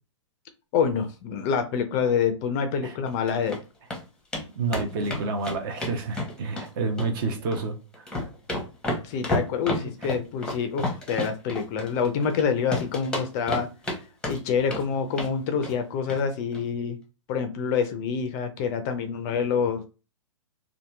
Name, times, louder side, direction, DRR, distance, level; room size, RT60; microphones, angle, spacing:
voice 1, 0.7-3.6 9.0-13.7 14.2-17.0 17.3-19.9, left 6 dB, 30° left, 0.4 m, -26 dB
sound 1, 3.1-3.6 3.9-4.0 4.3-4.4 4.7-6.7 7.0-7.7 7.9-12.4 12.7-14.0 14.2-14.8 15.1-15.3 15.6-15.8 16.1-16.2 16.5-16.6, left 1 dB, 5° left, 0.7 m, -31 dB
voice 2, 4.5-8.1 9.8-10.1, right 3 dB, 45° right, 0.6 m, -29 dB
2.7 x 2.4 x 2.2 m
hypercardioid pair, 125°, 17 cm